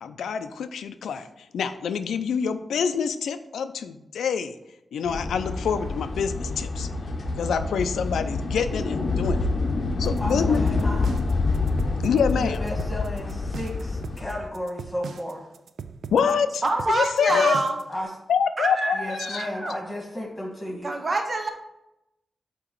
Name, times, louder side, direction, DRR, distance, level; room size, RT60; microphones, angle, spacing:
voice 1, 0.0-1.3 1.5-4.6 4.9-6.9 7.4-9.5 10.0-10.6 12.0-12.6 16.1-17.6 18.3-19.7, left 6 dB, 90° left, 10 dB, 0.4 m, -26 dB
sound 1, 5.1-14.5, left 3 dB, 55° left, 0.7 m, -27 dB
sound 2, 10.0-18.0, right 6 dB, 80° right, 0.3 m, -39 dB
voice 2, 10.2-11.1 12.3-15.5 17.3-17.5 17.9-18.1 18.9-20.9, left 1 dB, 15° left, -2 dB, 1.7 m, -34 dB
voice 3, 16.6-17.8 18.6-19.7 20.8-21.5, right 2 dB, 45° right, 5 dB, 0.9 m, -26 dB
8.4 x 2.9 x 4.5 m, 0.89 s
cardioid pair, 55°, 0 cm